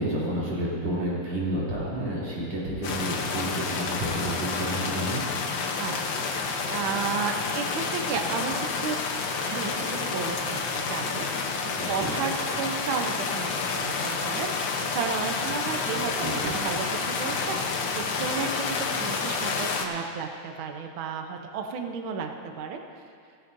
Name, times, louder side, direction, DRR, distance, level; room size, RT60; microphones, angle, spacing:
voice 1, 0.0-5.2 11.8-12.1 15.9-16.5, right 1 dB, 60° right, -7 dB, 4.3 m, -30 dB
sound 1, 2.8-19.8, left 4 dB, 90° left, 1.0 m, -29 dB
voice 2, 5.8-9.0 9.4-11.5 11.9-16.1 16.4-22.8, right 6 dB, 75° right, 4 dB, 1.1 m, -33 dB
30.0 x 10.0 x 2.7 m, 2.3 s
omnidirectional pair, 3.4 m